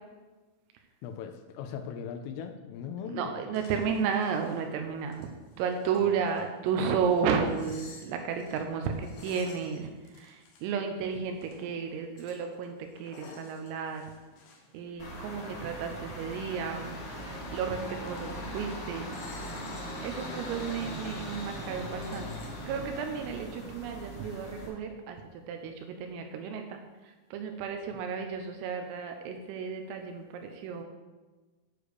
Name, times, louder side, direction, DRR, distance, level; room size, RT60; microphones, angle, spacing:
voice 1, 1.0-3.6 6.0-6.3, left 7 dB, 90° left, 6 dB, 3.3 m, -39 dB
voice 2, 3.1-5.3 5.6-9.9 10.2-14.0 14.7-16.9 17.5-19.1 20.0-25.2 25.5-26.8 27.3-30.8, right 6 dB, 85° right, 4 dB, 3.4 m, -33 dB
sound 1, 3.5-4.6 5.0-11.8 12.2-15.4 15.6-18.7 19.1-20.6 20.9-21.0 21.8-22.6, left 4 dB, 65° left, 2.6 m, -54 dB
sound 2, 15.0-24.7, equal, 45° left, 3.2 m, -40 dB
9.9 x 4.9 x 6.7 m, 1.2 s
omnidirectional pair, 5.9 m